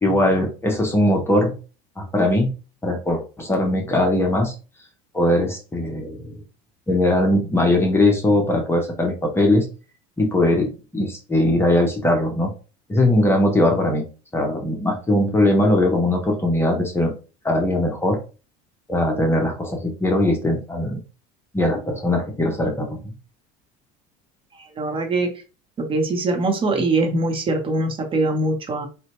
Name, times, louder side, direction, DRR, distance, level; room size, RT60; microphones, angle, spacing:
voice 1, 0.0-1.5 2.0-2.5 2.8-4.5 5.1-6.3 6.9-9.7 10.2-12.5 12.9-17.1 17.4-18.2 18.9-21.0 21.5-23.1, left 1 dB, 15° left, 2 dB, 0.7 m, -20 dB
voice 2, 24.7-25.3 25.8-28.9, right 2 dB, 30° right, 3 dB, 0.9 m, -22 dB
4.1 x 2.2 x 2.9 m, 0.34 s
supercardioid pair, 120°, 17 cm